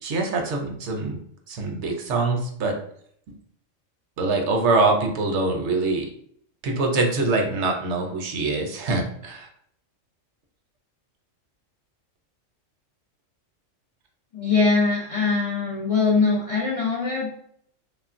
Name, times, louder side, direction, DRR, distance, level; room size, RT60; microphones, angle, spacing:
voice 1, 0.0-1.2 1.5-2.7 4.2-6.1 6.6-9.5, right 3 dB, 70° right, 2 dB, 0.8 m, -24 dB
voice 2, 14.3-17.3, left 4 dB, 65° left, -4 dB, 0.3 m, -22 dB
3.2 x 2.4 x 2.4 m, 0.66 s
omnidirectional pair, 1.4 m